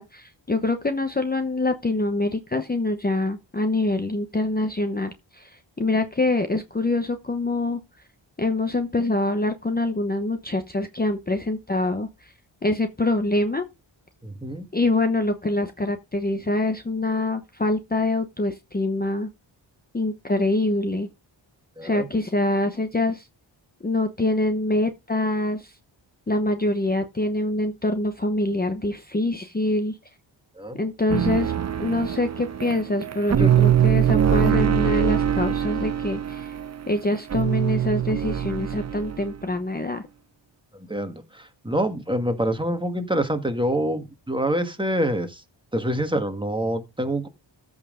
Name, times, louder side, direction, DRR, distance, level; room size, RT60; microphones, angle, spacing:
voice 1, 0.0-7.8 8.4-12.3 12.6-13.7 14.7-19.3 19.9-21.1 21.8-23.3 23.8-25.7 26.3-30.0 30.8-31.5 31.8-36.6 36.9-40.1, left 2 dB, 20° left, 0.9 m, -25 dB
voice 2, 14.2-14.7 21.8-22.1 30.6-30.8 33.4-33.6 40.7-45.4 45.7-47.3, right 1 dB, 10° right, 1.6 m, -26 dB
sound 1, 31.1-39.3, right 9 dB, 35° right, 0.6 m, -23 dB
14.5 x 5.6 x 3.8 m
wide cardioid pair, 100°, 47 cm